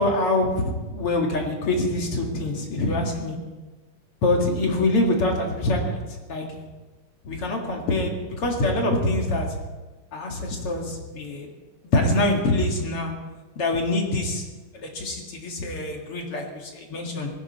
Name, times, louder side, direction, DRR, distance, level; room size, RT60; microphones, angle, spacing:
voice 1, 0.0-3.4 4.2-6.0 6.3-6.5 7.2-9.5 10.1-11.5 11.8-13.1 13.6-14.4 14.7-17.3, left 2 dB, 45° left, 1 dB, 2.6 m, -25 dB
19.0 x 16.0 x 4.3 m, 1.2 s
omnidirectional pair, 3.8 m